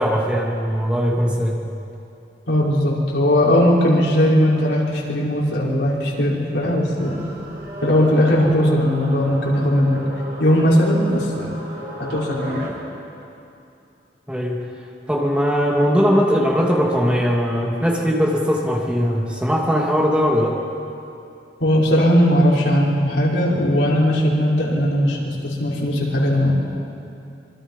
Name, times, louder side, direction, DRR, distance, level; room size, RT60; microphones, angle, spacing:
voice 1, 0.0-1.6 14.3-14.6 15.1-20.6, equal, 5° right, -2 dB, 2.6 m, -19 dB
voice 2, 2.5-7.2 7.8-10.0 10.4-11.6 12.1-12.7 21.6-26.5, equal, 85° left, -4 dB, 5.4 m, -18 dB
sound 1, 7.0-12.7, left 1 dB, 55° right, 4.7 m, -34 dB
26.5 x 24.5 x 5.6 m, 2.7 s
head